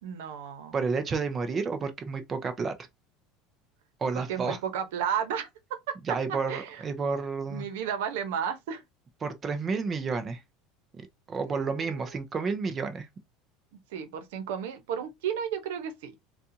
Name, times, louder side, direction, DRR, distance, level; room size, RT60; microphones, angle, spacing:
voice 1, 0.0-0.7 4.3-6.8 7.5-8.8 11.4-12.2 13.9-16.1, right 8 dB, 90° right, 0.8 m, -33 dB
voice 2, 0.7-2.8 4.0-4.6 6.1-7.7 9.2-10.4 10.9-13.1, right 4 dB, 20° right, 0.5 m, -31 dB
4.1 x 2.4 x 2.7 m
cardioid pair, 175°, 0 cm